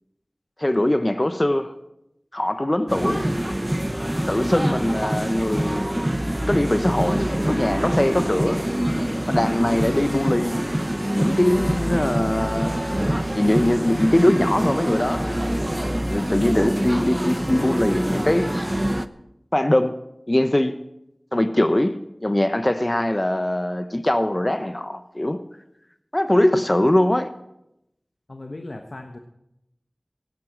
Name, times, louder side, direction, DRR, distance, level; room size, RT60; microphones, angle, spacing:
voice 1, 0.6-1.7 2.3-3.2 4.3-5.8 6.5-8.7 9.3-10.6 11.1-12.9 13.3-15.4 16.1-18.7 19.5-20.0 20.3-20.8 21.3-25.4 26.1-27.3, left 1 dB, 30° left, 0.9 m, -21 dB
sound 1, 2.9-19.1, right 1 dB, 15° right, 0.8 m, -25 dB
voice 2, 28.3-29.2, left 2 dB, 65° left, 1.3 m, -37 dB
17.5 x 9.5 x 7.4 m
wide cardioid pair, 40°, 0 cm